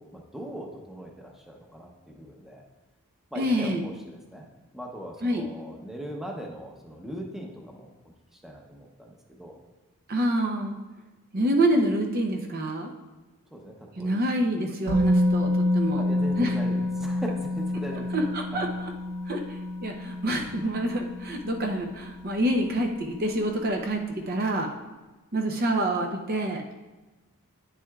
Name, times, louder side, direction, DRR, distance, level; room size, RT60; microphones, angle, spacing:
voice 1, 0.0-2.6 3.3-4.5 4.7-7.9 8.3-9.6 13.5-14.1 16.0-18.6, equal, ahead, 0 dB, 0.8 m, -40 dB
voice 2, 3.4-3.8 5.2-5.4 10.1-10.8 11.3-12.9 14.0-16.0 16.4-16.8 18.1-18.7 19.3-19.4 19.8-24.7 25.3-26.6, right 1 dB, 45° right, 2 dB, 0.7 m, -27 dB
Musical instrument, 14.9-22.8 23.0-23.2, left 1 dB, 65° right, 1.4 m, -28 dB
9.5 x 7.5 x 2.4 m, 1.2 s
head